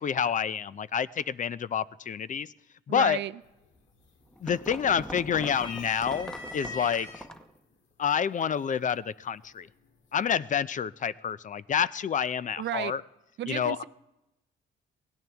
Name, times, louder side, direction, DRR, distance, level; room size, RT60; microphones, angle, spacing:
voice 1, 0.0-2.5 2.9-3.2 4.4-7.3 8.0-9.7 10.1-13.0 13.5-13.8, left 8 dB, 40° left, 18 dB, 0.5 m, -28 dB
voice 2, 2.9-3.3 12.6-12.9 13.4-13.8, right 12 dB, 65° right, 13 dB, 0.5 m, -33 dB
sound 1, 3.4-3.9 4.2-4.9 5.3-7.2 8.1-8.2 9.4-9.9, left 3 dB, 75° left, 1.8 m, -42 dB
sound 2, 3.8-7.6, equal, 5° left, 0.9 m, -42 dB
22.0 x 17.5 x 3.5 m, 0.95 s
cardioid pair, 90°, 20 cm